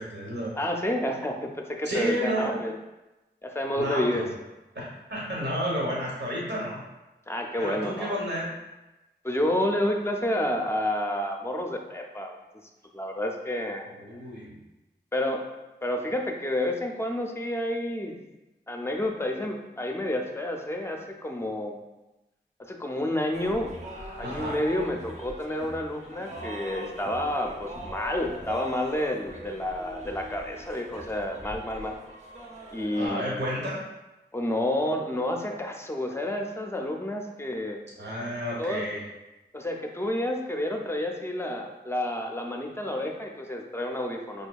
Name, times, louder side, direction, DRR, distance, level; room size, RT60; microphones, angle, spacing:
voice 1, 0.0-0.5 1.8-2.6 3.8-4.3 4.7-4.8 5.1-6.8 7.6-8.5 13.9-14.6 24.2-24.6 33.0-33.8 38.0-39.0, equal, 75° right, -4 dB, 0.9 m, -31 dB
voice 2, 0.6-2.8 3.4-4.2 7.3-8.2 9.2-12.4 12.9-13.9 15.1-15.4 15.8-18.2 18.7-21.8 22.6-23.7 24.2-31.9 32.7-33.2 34.3-37.8 38.6-38.9 39.5-44.5, left 1 dB, 15° left, 2 dB, 0.5 m, -29 dB
sound 1, 23.3-33.1, right 1 dB, 40° right, 0.6 m, -41 dB
4.9 x 2.6 x 2.3 m, 1.0 s
wide cardioid pair, 65°, 18 cm